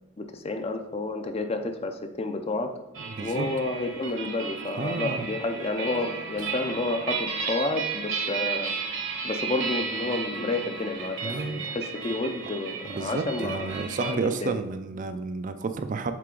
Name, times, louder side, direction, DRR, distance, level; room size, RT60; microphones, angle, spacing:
voice 1, 0.2-2.8 3.2-8.7 9.2-14.6, left 2 dB, 30° left, 7 dB, 0.5 m, -30 dB
sound 1, 2.9-14.1, right 5 dB, 70° right, 1.1 m, -34 dB
voice 2, 3.1-3.5 4.8-5.3 11.2-11.6 12.9-16.1, right 4 dB, 40° right, 9 dB, 0.4 m, -31 dB
7.5 x 3.8 x 3.8 m, 0.98 s
head